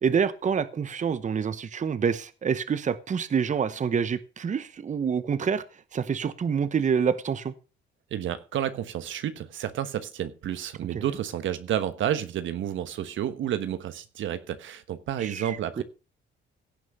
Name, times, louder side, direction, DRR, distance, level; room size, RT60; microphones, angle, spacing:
voice 1, 0.0-5.6 5.9-7.5 10.9-11.0 15.2-15.8, right 6 dB, 40° right, 0.9 m, -27 dB
voice 2, 8.1-15.8, right 10 dB, 75° right, 1.3 m, -30 dB
16.5 x 6.2 x 5.4 m
cardioid pair, 90°, 20 cm